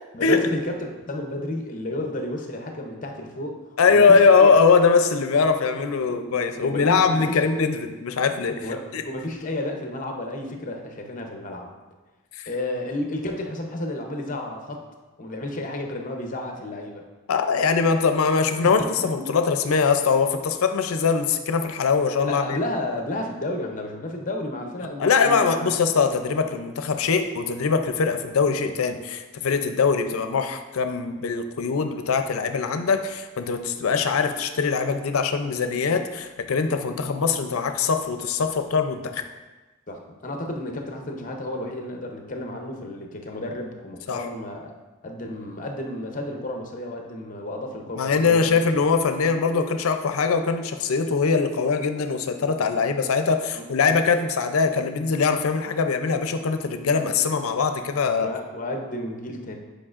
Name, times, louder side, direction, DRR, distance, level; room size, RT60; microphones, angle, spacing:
voice 1, 0.1-3.6 3.9-4.5 6.6-7.4 8.6-11.7 12.5-14.8 15.2-17.0 18.6-19.2 22.2-25.7 39.9-44.7 45.0-48.7 53.6-53.7 58.2-59.6, left 1 dB, 40° left, 2 dB, 0.7 m, -32 dB
voice 2, 3.8-9.0 12.4-12.5 17.3-22.6 25.0-39.2 44.1-44.3 47.9-58.3, left 5 dB, 85° left, 8 dB, 0.5 m, -22 dB
8.6 x 5.1 x 2.5 m, 1.2 s
head